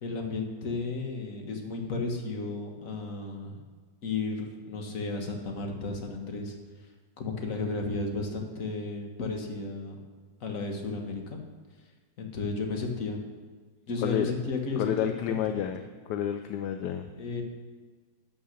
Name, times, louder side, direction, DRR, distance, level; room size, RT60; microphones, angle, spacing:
voice 1, 0.0-3.6 4.0-6.6 7.2-10.0 10.4-11.4 12.2-13.2 13.9-15.6 17.1-17.4, left 3 dB, 50° left, 3 dB, 1.6 m, -33 dB
voice 2, 14.0-14.3 14.8-17.1, left 9 dB, 75° left, 8 dB, 1.1 m, -30 dB
12.0 x 5.8 x 6.5 m, 1.5 s
omnidirectional pair, 2.0 m